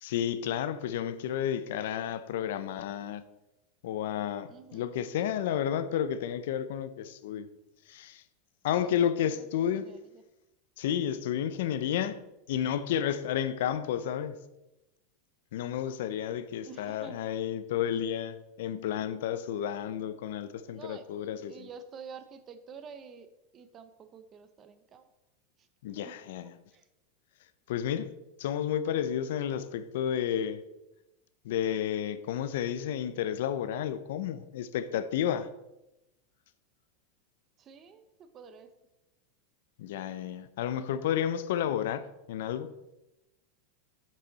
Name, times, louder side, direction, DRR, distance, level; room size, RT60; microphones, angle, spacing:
voice 1, 0.0-3.2 3.8-7.5 7.9-8.2 8.6-9.8 10.8-12.2 12.5-14.4 15.5-21.7 25.8-26.5 27.7-28.1 28.4-30.6 31.4-35.5 39.8-42.7, left 9 dB, 75° left, 0.6 m, -31 dB
voice 2, 4.5-4.9 5.2-5.6 8.8-10.2 16.6-17.2 17.7-18.0 20.7-21.0 21.5-23.3 23.5-25.1 25.6-25.7 25.9-26.2 26.7-26.9 37.6-38.7, right 6 dB, 30° right, 0.7 m, -49 dB
7.6 x 7.2 x 4.0 m
supercardioid pair, 145°, 0 cm